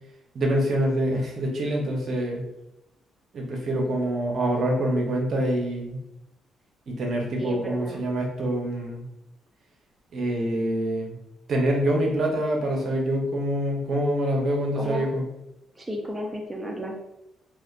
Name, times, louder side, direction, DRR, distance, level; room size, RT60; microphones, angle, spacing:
voice 1, 0.3-2.4 3.3-6.0 6.9-9.0 10.1-11.2 11.5-15.2, right 1 dB, 60° right, 0 dB, 0.6 m, -25 dB
voice 2, 7.4-8.0 14.8-15.1 15.8-16.9, equal, 15° right, 0 dB, 0.4 m, -33 dB
2.7 x 2.1 x 2.4 m, 0.86 s
cardioid pair, 90°, 0 cm